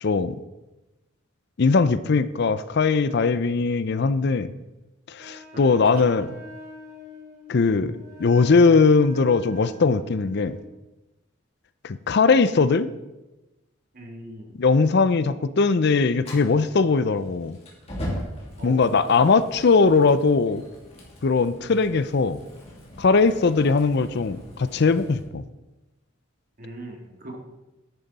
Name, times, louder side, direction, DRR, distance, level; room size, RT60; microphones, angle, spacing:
voice 1, 0.0-0.4 1.6-4.5 5.1-6.3 7.5-10.6 11.8-12.9 14.6-17.6 18.6-20.6 21.2-22.4 23.0-25.4, left 4 dB, 55° left, 14 dB, 0.5 m, -20 dB
Wind instrument woodwind instrument, 5.1-10.7, equal, 20° right, 2.9 m, -44 dB
voice 2, 5.9-6.3 13.9-14.6 18.6-18.9 23.6-23.8 26.6-27.4, right 1 dB, 45° right, 0 dB, 2.0 m, -40 dB
Fire, 16.2-25.2, equal, 30° left, 2.8 m, -40 dB
10.5 x 9.6 x 4.1 m, 1.0 s
head